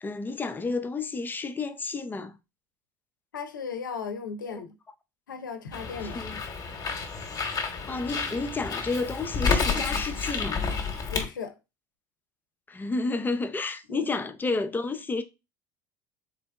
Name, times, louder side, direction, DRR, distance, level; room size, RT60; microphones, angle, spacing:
voice 1, 0.0-2.3 4.5-4.6 6.1-6.4 7.9-10.6 12.7-15.2, left 3 dB, 20° left, 0.5 m, -31 dB
voice 2, 3.3-4.8 5.3-6.2 11.1-11.5 13.9-14.0, left 6 dB, 90° left, 0.5 m, -36 dB
Bird, 5.7-11.3, left 5 dB, 35° left, 1.1 m, -30 dB
3.8 x 3.3 x 2.2 m
hypercardioid pair, 70°, 10 cm